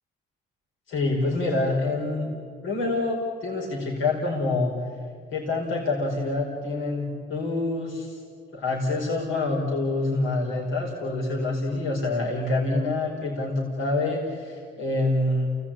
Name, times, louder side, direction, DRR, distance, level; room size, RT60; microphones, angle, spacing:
voice 1, 0.9-2.3 2.6-4.7 5.3-8.2 8.5-15.5, left 2 dB, 85° left, -3 dB, 5.0 m, -26 dB
29.5 x 18.5 x 8.9 m, 2.2 s
cardioid pair, 90°, 20 cm